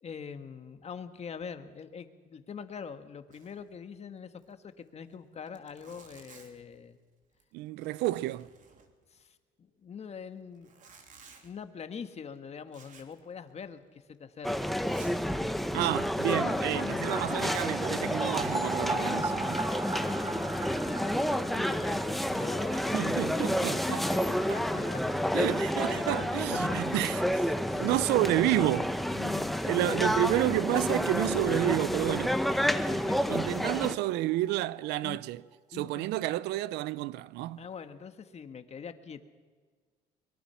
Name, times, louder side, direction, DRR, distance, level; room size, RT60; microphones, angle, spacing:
voice 1, 0.0-7.0 9.1-10.7 11.4-14.7 16.3-17.6 18.8-23.1 24.0-25.0 25.8-26.2 26.7-26.8 27.6-27.9 29.1-30.1 31.2-31.3 32.1-32.2 32.5-33.5 35.0-35.2 35.7-36.1 37.6-39.2, left 6 dB, 40° left, 1.7 m, -43 dB
Zipper (clothing), 3.3-3.7 3.9-4.0 4.4-4.5 5.1-5.2 5.5-6.7 7.2-7.5 7.8-9.2 10.5-11.5 12.7-13.2 13.5-13.6 14.1-14.2 14.8-15.2 16.1-16.5 17.3-17.8 18.4-19.0, right 5 dB, 50° right, 3.3 m, -54 dB
voice 2, 7.5-8.5 15.7-19.6 22.7-24.0 25.3-27.2 27.8-28.9 29.7-32.3 33.3-35.4 35.7-37.6, right 15 dB, 90° right, 0.6 m, -30 dB
sound 1, 14.4-34.0, equal, ahead, 1.1 m, -30 dB
sound 2, 17.0-28.6 28.9-29.0 29.3-29.4 32.4-32.5 32.7-32.8 33.1-34.9 35.2-35.3, right 3 dB, 20° right, 0.8 m, -40 dB
23.0 x 22.5 x 5.9 m
cardioid pair, 110°, 17 cm